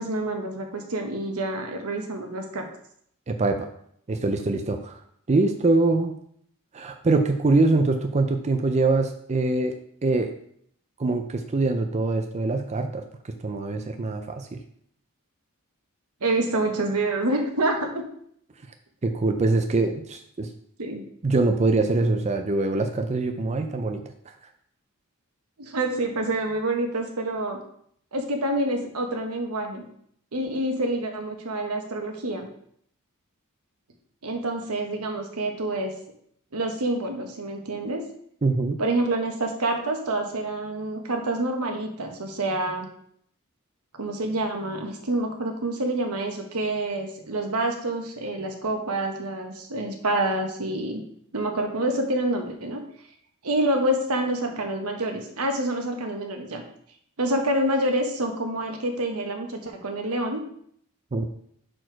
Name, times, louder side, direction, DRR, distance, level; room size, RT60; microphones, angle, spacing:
voice 1, 0.0-2.7 16.2-18.0 20.8-21.0 25.6-27.6 28.1-29.9 30.3-32.5 34.2-35.9 36.5-38.0 38.8-42.9 44.0-51.0 51.3-52.8 53.4-56.6 57.2-60.4, right 1 dB, 85° right, 4 dB, 1.1 m, -27 dB
voice 2, 3.3-3.7 4.1-5.0 5.3-6.2 6.7-9.7 10.0-10.3 11.0-13.0 13.4-14.6 19.0-20.5 21.2-24.1 38.4-38.8 61.1-61.3, right 3 dB, 30° right, 6 dB, 0.5 m, -23 dB
6.5 x 4.3 x 4.6 m, 0.66 s
head